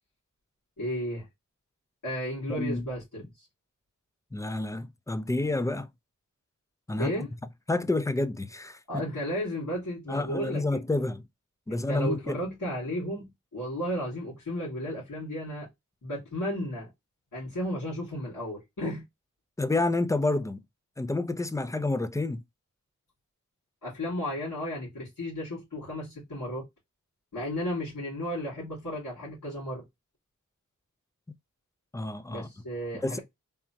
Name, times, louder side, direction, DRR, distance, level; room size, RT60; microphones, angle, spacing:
voice 1, 0.8-1.3 2.0-3.5 7.0-7.3 8.9-10.8 11.7-15.7 16.0-16.9 17.3-19.0 23.8-26.6 27.3-29.8 32.3-33.2, equal, 70° left, 2.0 m, -34 dB
voice 2, 2.5-2.8 4.3-5.9 6.9-7.1 7.7-9.0 10.1-11.2 11.7-12.4 19.6-20.6 21.0-22.4 31.9-32.5 33.0-33.2, left 2 dB, 10° left, 0.4 m, -29 dB
3.4 x 2.0 x 2.8 m
cardioid pair, 40°, 33 cm